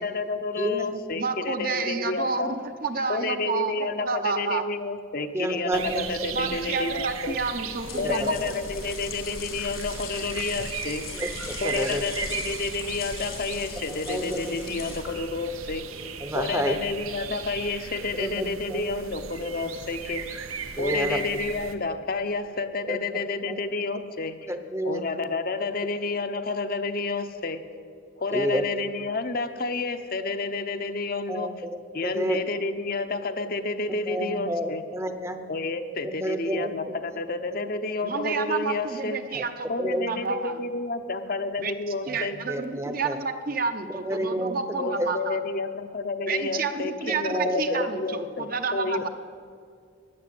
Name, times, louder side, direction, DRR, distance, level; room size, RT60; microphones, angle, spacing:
voice 1, 0.0-2.5 3.1-7.4 8.0-11.0 11.6-15.9 16.3-20.4 20.8-24.5 24.8-27.6 28.2-31.5 31.9-34.8 35.5-39.2 39.7-42.4 44.8-49.1, left 3 dB, 45° left, 8 dB, 0.8 m, -30 dB
voice 2, 0.6-1.0 5.3-6.5 8.0-8.3 11.1-12.0 14.1-14.4 14.7-14.8 16.2-16.8 18.2-18.8 20.8-21.2 22.9-23.2 23.5-23.6 24.5-25.0 28.3-28.6 31.3-32.4 33.9-35.4 36.0-36.7 39.3-39.4 39.8-40.1 42.1-42.2 42.5-43.2 44.0-44.5 44.9-45.1 47.3-47.8, equal, 15° right, 9 dB, 0.8 m, -30 dB
voice 3, 1.2-4.6 6.3-8.5 38.0-40.6 41.6-41.7 42.1-45.4 46.3-49.1, right 4 dB, 45° right, 7 dB, 0.8 m, -30 dB
sound 1, 5.7-21.8, right 6 dB, 85° right, 1.0 m, -37 dB
sound 2, 7.5-15.4, left 5 dB, 85° left, 3.0 m, -40 dB
15.5 x 10.5 x 7.7 m, 2.2 s
head